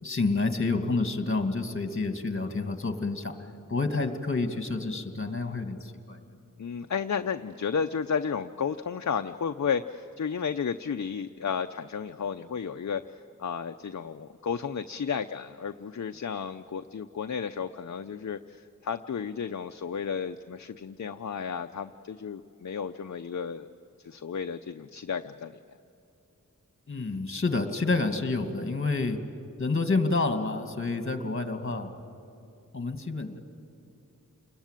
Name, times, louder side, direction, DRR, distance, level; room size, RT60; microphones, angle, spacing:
voice 1, 0.0-3.4 3.7-6.2 26.9-29.2 29.6-31.9 32.7-33.4, left 3 dB, 40° left, 7 dB, 2.2 m, -29 dB
voice 2, 6.6-13.1 13.4-23.7 24.0-25.6, left 6 dB, 60° left, 7 dB, 0.7 m, -33 dB
29.0 x 21.5 x 9.1 m, 2.7 s
wide cardioid pair, 80°, 32 cm